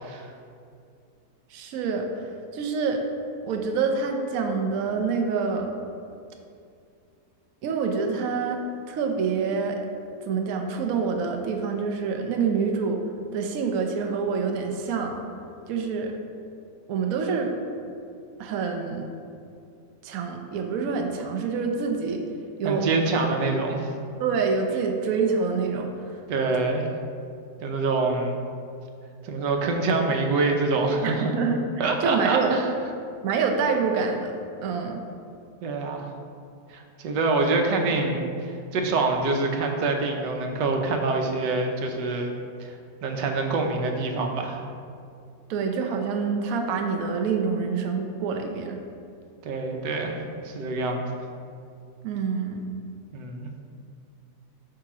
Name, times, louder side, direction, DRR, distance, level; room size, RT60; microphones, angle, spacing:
voice 1, 1.5-3.0 3.4-5.7 7.6-8.6 8.9-9.8 10.3-13.0 13.3-15.2 15.7-16.2 16.9-17.5 18.4-19.1 20.0-22.2 22.6-22.9 24.2-25.9 31.0-31.6 32.0-32.5 33.2-34.3 34.6-35.0 45.5-48.8 52.0-52.6, right 5 dB, 65° right, 3 dB, 1.0 m, -26 dB
voice 2, 22.6-23.9 26.3-26.9 27.6-28.3 29.2-31.4 31.8-32.6 35.6-36.1 36.7-38.2 38.4-42.3 42.6-42.8 43.0-44.6 49.4-51.0 53.1-53.5, right 3 dB, 90° right, 3 dB, 1.4 m, -25 dB
8.5 x 2.9 x 5.9 m, 2.4 s
omnidirectional pair, 1.8 m